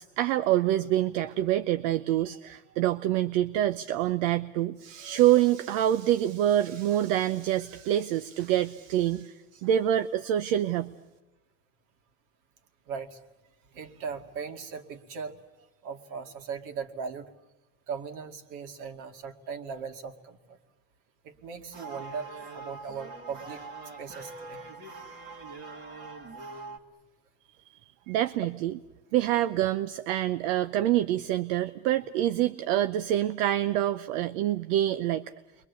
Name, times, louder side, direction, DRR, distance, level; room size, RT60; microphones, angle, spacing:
voice 1, 0.0-10.9 28.1-28.7 29.1-35.2, right 12 dB, 75° right, 11 dB, 0.9 m, -26 dB
voice 2, 12.9-13.2 13.7-15.4 15.8-17.3 17.9-20.6 21.2-23.7 24.0-24.7 25.1-25.2 27.6-27.8 28.1-28.2, right 6 dB, 55° right, 7 dB, 2.4 m, -39 dB
sound 1, 21.4-26.8, right 3 dB, 30° right, 2.2 m, -43 dB
29.5 x 23.0 x 8.3 m, 1.0 s
cardioid pair, 160°, 39 cm